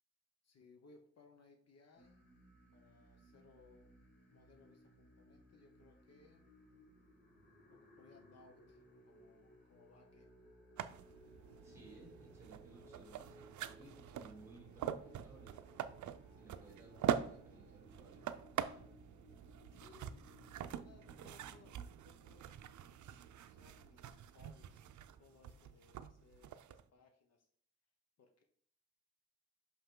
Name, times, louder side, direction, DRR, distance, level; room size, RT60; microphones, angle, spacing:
voice 1, 0.4-2.2 2.7-3.9 4.3-6.4 7.7-10.3 19.7-22.5 23.5-24.9 25.2-27.5 28.2-28.4, left 4 dB, 60° left, 4 dB, 0.8 m, -65 dB
sound 1, 1.9-21.7, left 1 dB, 40° left, 2.4 m, -63 dB
sound 2, 10.8-26.8, right 9 dB, 80° right, 0.5 m, -44 dB
voice 2, 11.5-15.6 16.3-18.3, right 2 dB, 10° right, -1 dB, 2.5 m, -60 dB
5.8 x 5.6 x 3.7 m, 0.62 s
wide cardioid pair, 170°, 29 cm